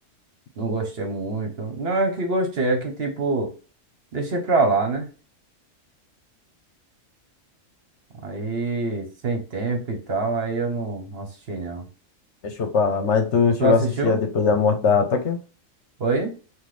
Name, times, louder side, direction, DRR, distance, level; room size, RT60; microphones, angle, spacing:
voice 1, 0.6-3.5 4.1-5.1 8.2-11.9 13.6-14.2 16.0-16.3, right 3 dB, 55° right, 1.2 m, -25 dB
voice 2, 12.4-15.4, left 5 dB, 65° left, 1.1 m, -21 dB
5.8 x 2.6 x 3.3 m
omnidirectional pair, 1.3 m